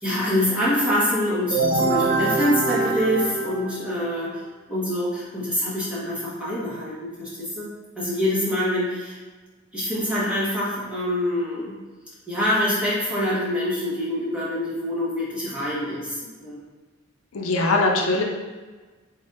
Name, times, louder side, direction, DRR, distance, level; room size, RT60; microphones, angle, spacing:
voice 1, 0.0-4.3 4.7-7.7 8.0-9.2 9.7-11.8 12.3-16.6 17.8-18.0, left 1 dB, 5° right, -9 dB, 1.1 m, -25 dB
sound 1, 1.5-4.2, right 3 dB, 75° right, 0.8 m, -24 dB
voice 2, 17.3-18.2, left 2 dB, 75° left, 1 dB, 0.5 m, -21 dB
4.0 x 3.4 x 2.5 m, 1.3 s
head